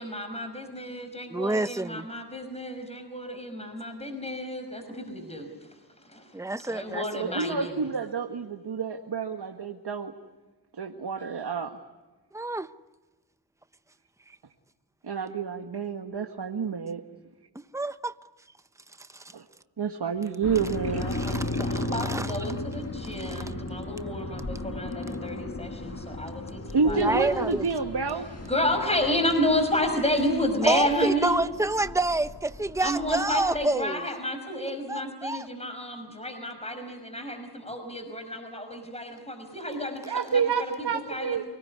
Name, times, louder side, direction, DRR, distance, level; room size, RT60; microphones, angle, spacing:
voice 1, 0.0-6.3 6.6-7.8 20.9-27.4 28.4-31.4 32.8-41.4, left 1 dB, 15° left, 5.5 m, -31 dB
voice 2, 1.3-2.1 6.3-7.4 12.3-12.7 17.7-18.1 19.0-19.2 21.1-22.3 23.2-23.4 26.9-27.6 30.6-34.0 34.9-35.5, right 2 dB, 5° right, 1.0 m, -28 dB
voice 3, 7.1-10.1 10.7-11.8 15.0-17.0 19.3-19.4 19.8-21.3 26.7-28.3 40.1-41.4, right 5 dB, 70° right, 1.8 m, -29 dB
sound 1, 20.4-33.6, left 2 dB, 35° left, 1.9 m, -36 dB
29.0 x 19.0 x 9.6 m
cardioid pair, 50°, 42 cm